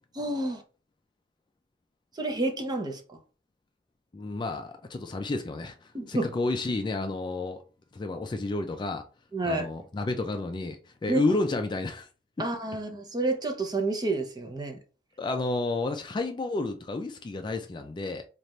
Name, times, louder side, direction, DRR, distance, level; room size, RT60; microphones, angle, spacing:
voice 1, 0.1-0.6 2.1-3.2 5.9-6.3 9.3-9.7 11.1-11.2 12.4-14.8, right 2 dB, 25° right, 0.7 m, -29 dB
voice 2, 4.1-7.6 7.9-9.0 9.4-12.1 15.2-18.3, left 2 dB, 25° left, 0.3 m, -31 dB
3.3 x 2.4 x 4.1 m
head